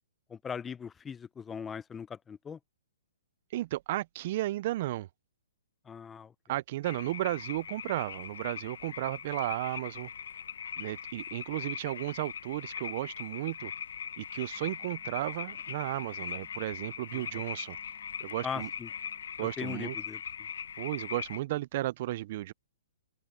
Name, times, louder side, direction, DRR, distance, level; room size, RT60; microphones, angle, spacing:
voice 1, 0.3-2.6 5.9-6.3 17.1-17.3 18.4-18.9 19.4-20.2, left 7 dB, 15° left, 0.7 m, -39 dB
voice 2, 3.5-5.1 6.5-10.1 10.8-13.7 14.2-17.8 18.2-18.7 19.4-20.0 20.8-22.5, right 16 dB, 45° right, 0.5 m, -34 dB
sound 1, 6.8-21.4, left 7 dB, 70° left, 0.6 m, -41 dB
Wind instrument woodwind instrument, 14.5-19.3, left 25 dB, 35° left, 2.5 m, -66 dB
open air
hypercardioid pair, 135°, 0 cm